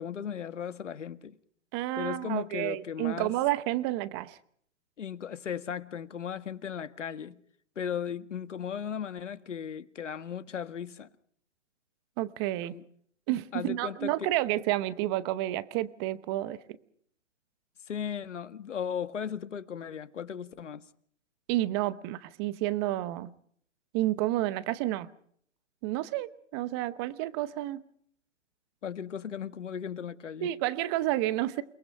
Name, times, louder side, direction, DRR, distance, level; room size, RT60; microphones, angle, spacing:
voice 1, 0.0-1.3 1.9-3.4 5.0-7.4 7.7-11.1 12.6-12.8 13.5-14.3 17.9-20.8 28.8-30.5, left 8 dB, 75° left, 1.8 m, -36 dB
voice 2, 1.7-4.4 12.2-12.7 13.3-16.6 21.5-23.3 23.9-25.1 25.8-27.8 30.4-31.6, right 15 dB, 20° right, 0.9 m, -30 dB
29.0 x 19.5 x 5.4 m
hypercardioid pair, 150°, 37 cm